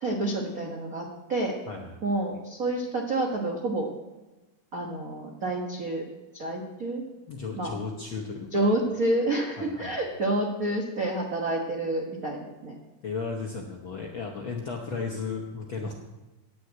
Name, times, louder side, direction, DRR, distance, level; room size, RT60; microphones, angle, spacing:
voice 1, 0.0-1.5 2.0-3.9 4.7-6.0 6.3-7.0 7.6-7.7 8.5-12.7, right 1 dB, 80° right, 0 dB, 0.7 m, -28 dB
voice 2, 1.7-2.0 7.3-8.8 9.6-10.0 13.0-15.9, left 4 dB, 70° left, 0 dB, 1.2 m, -35 dB
10.0 x 6.3 x 8.9 m, 1.1 s
omnidirectional pair, 3.7 m